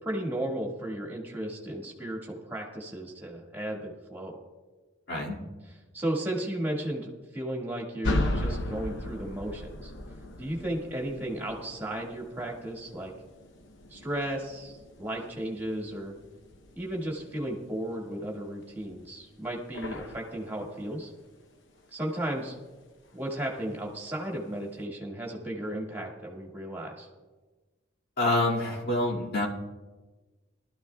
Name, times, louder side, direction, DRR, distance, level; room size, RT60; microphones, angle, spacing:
voice 1, 0.0-4.4 5.9-9.9 10.4-13.1 13.9-16.1 16.8-21.1 21.9-22.6 23.1-27.1, right 1 dB, 10° right, -1 dB, 1.8 m, -34 dB
voice 2, 5.1-5.4 28.2-29.5, left 2 dB, 55° left, -4 dB, 2.3 m, -27 dB
sound 1, 8.0-18.3 18.6-21.2 21.6-21.7 22.3-22.8 23.1-23.2 23.8-23.9, left 1 dB, 70° left, 0.9 m, -37 dB
19.0 x 13.0 x 2.3 m, 1.3 s
head